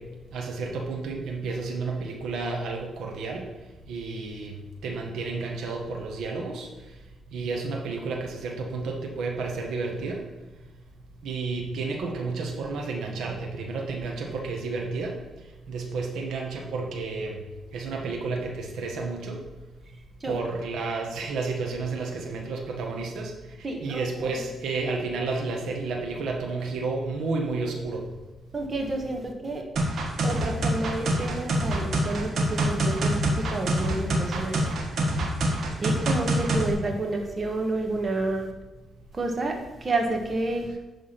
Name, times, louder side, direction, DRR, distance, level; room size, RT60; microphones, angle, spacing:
voice 1, 0.3-3.5 3.9-4.6 4.8-6.7 7.3-10.2 11.2-15.1 15.7-17.4 17.7-19.4 20.3-23.3 23.8-28.0, right 3 dB, 85° right, 1 dB, 1.3 m, -31 dB
voice 2, 23.6-24.4 28.5-29.6 30.2-34.7 35.8-38.5 39.1-40.7, right 2 dB, 35° right, 2 dB, 1.4 m, -30 dB
sound 1, 29.8-36.7, right 1 dB, 65° right, 1.6 m, -25 dB
10.5 x 3.6 x 6.0 m, 1.1 s
cardioid pair, 90°, 0 cm